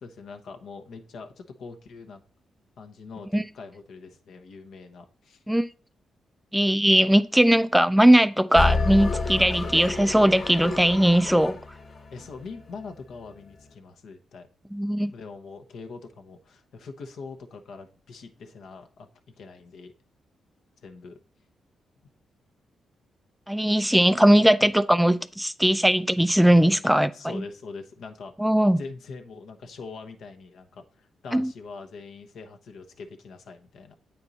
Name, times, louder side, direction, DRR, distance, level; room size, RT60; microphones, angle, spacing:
voice 1, 0.0-2.2 2.8-5.4 12.1-14.5 15.1-19.1 19.4-19.9 20.8-21.2 26.8-28.3 28.8-34.0, left 4 dB, 75° left, 1.0 m, -43 dB
voice 2, 6.5-11.6 14.7-15.1 23.5-27.4 28.4-28.8 31.3-31.5, right 1 dB, 5° right, 0.3 m, -19 dB
sound 1, 8.6-12.9, left 3 dB, 55° left, 1.4 m, -29 dB
8.6 x 4.4 x 4.0 m
cardioid pair, 90°, 0 cm